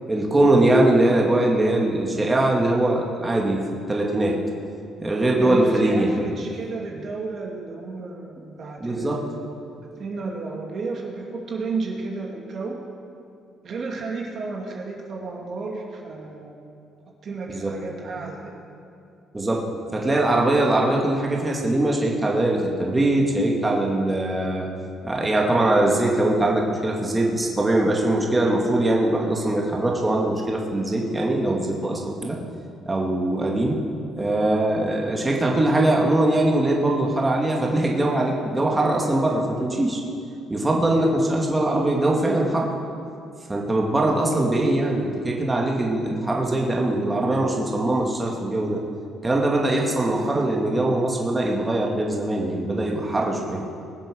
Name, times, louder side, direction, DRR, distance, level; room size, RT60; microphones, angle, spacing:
voice 1, 0.1-3.6 3.9-4.4 5.0-6.2 8.8-9.2 17.5-17.8 19.3-24.7 25.0-32.4 32.8-33.8 34.2-40.0 40.5-42.7 43.5-48.8 49.2-53.6, right 1 dB, 20° right, -1 dB, 2.2 m, -22 dB
voice 2, 5.4-9.5 10.0-12.8 13.6-16.6 17.2-18.6, right 3 dB, 55° right, -1 dB, 2.3 m, -32 dB
21.0 x 7.6 x 6.3 m, 2.5 s
cardioid pair, 90°, 0 cm